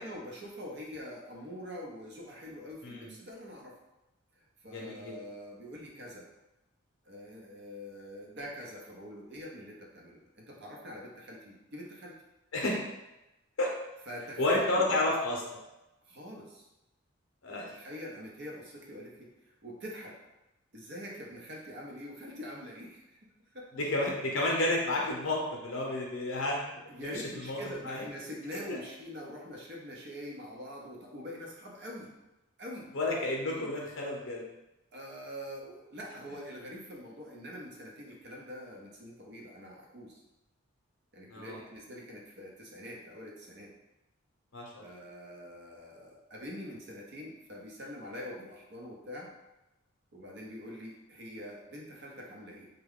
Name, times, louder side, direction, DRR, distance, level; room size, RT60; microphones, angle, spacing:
voice 1, 0.0-3.8 4.6-6.3 7.1-12.1 14.1-14.8 16.0-16.7 17.7-20.2 20.7-23.7 26.9-32.1 32.6-32.9 34.9-40.2 41.1-43.7 44.8-49.3 50.1-52.7, equal, 50° right, -1 dB, 0.7 m, -44 dB
voice 2, 4.7-5.1 12.5-12.8 13.6-13.7 14.4-15.4 17.4-17.7 23.8-28.0 28.7-28.8 32.9-34.5 41.3-41.6 44.5-44.9, left 2 dB, 65° left, -1 dB, 0.6 m, -31 dB
3.5 x 2.2 x 3.6 m, 0.96 s
head